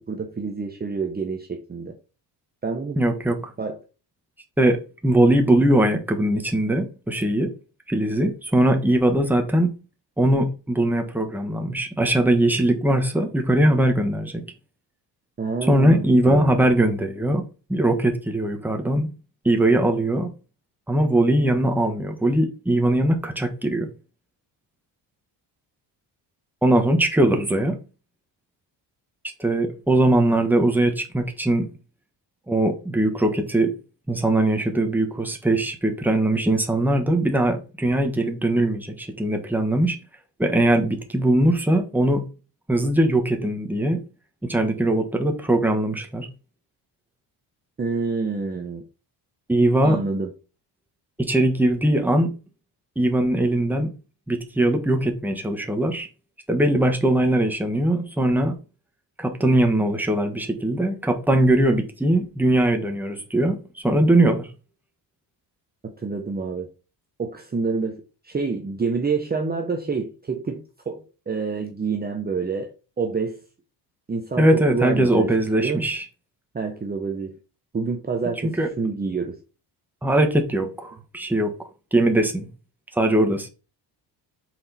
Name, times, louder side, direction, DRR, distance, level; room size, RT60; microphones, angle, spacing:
voice 1, 0.0-2.0 2.6-3.0 3.6-3.8 15.4-16.7 47.8-48.8 49.8-50.3 65.8-66.7 67.2-72.7 73.0-73.4 74.1-75.3 75.6-75.9 76.5-77.4 77.7-79.4, right 4 dB, 20° right, 1.0 m, -28 dB
voice 2, 3.0-3.4 4.6-7.5 7.9-9.7 10.2-14.4 15.7-17.4 17.7-19.1 19.4-20.3 20.9-23.9 26.6-27.8 29.4-31.7 32.5-33.7 34.1-40.0 40.4-42.3 42.7-44.0 44.4-46.3 49.5-50.0 51.2-52.3 53.0-53.9 54.3-56.1 56.5-58.6 59.2-64.5 74.4-76.0 78.6-78.7 80.0-82.5 83.0-83.5, right 1 dB, 5° right, 1.3 m, -21 dB
6.1 x 4.2 x 4.1 m
cardioid pair, 110°, 43 cm